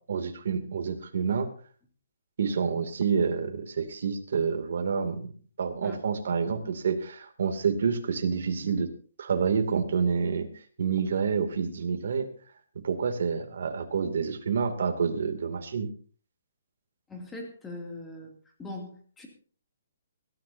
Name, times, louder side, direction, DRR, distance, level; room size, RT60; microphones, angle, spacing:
voice 1, 0.1-1.5 2.4-5.3 5.6-8.9 9.2-10.5 10.8-12.3 12.8-15.9, right 6 dB, 60° right, 5 dB, 2.5 m, -28 dB
voice 2, 17.1-18.3 18.6-19.3, left 2 dB, 5° left, 1 dB, 2.7 m, -40 dB
21.5 x 13.5 x 2.7 m, 0.41 s
hypercardioid pair, 170°, 0 cm